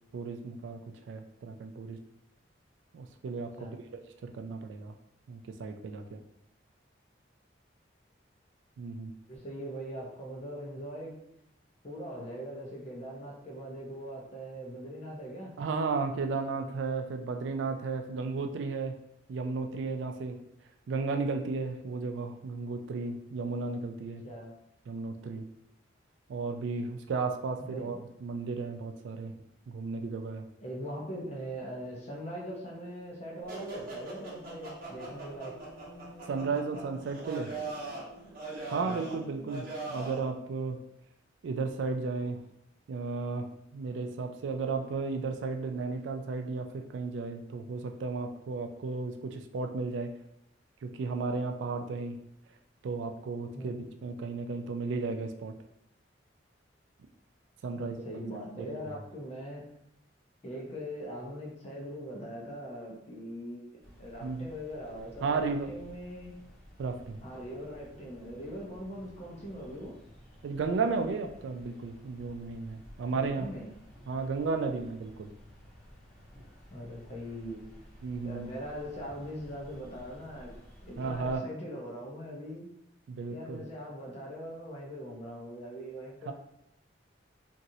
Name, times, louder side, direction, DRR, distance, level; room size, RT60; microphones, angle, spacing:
voice 1, 0.1-0.8 1.1-2.0 2.9-3.5 4.2-4.9 5.3-6.2 8.8-9.1 15.6-19.0 19.3-20.4 20.9-24.2 24.9-25.5 26.3-29.3 29.7-30.4 36.3-37.5 38.7-40.8 41.4-42.4 42.9-50.1 50.8-52.2 52.8-55.5 57.6-58.0 58.6-58.7 64.2-64.5 65.2-65.7 66.8-67.2 70.4-73.5 74.1-75.3 78.0-78.5 81.0-81.5 83.1-83.6 86.3-86.4, right 4 dB, 75° right, 5 dB, 0.3 m, -34 dB
voice 2, 9.3-11.1 11.8-15.5 24.2-24.5 27.6-28.0 30.6-35.5 38.8-39.1 53.5-53.7 57.7-59.6 60.4-66.3 67.2-69.9 73.1-73.7 76.7-77.6 78.2-80.5 80.8-82.7 83.3-86.3, equal, 35° left, -2 dB, 0.7 m, -41 dB
sound 1, 33.5-40.3, right 2 dB, 50° right, 1.0 m, -41 dB
sound 2, 63.8-81.4, equal, ahead, 1.0 m, -53 dB
3.0 x 2.6 x 2.7 m, 0.82 s
head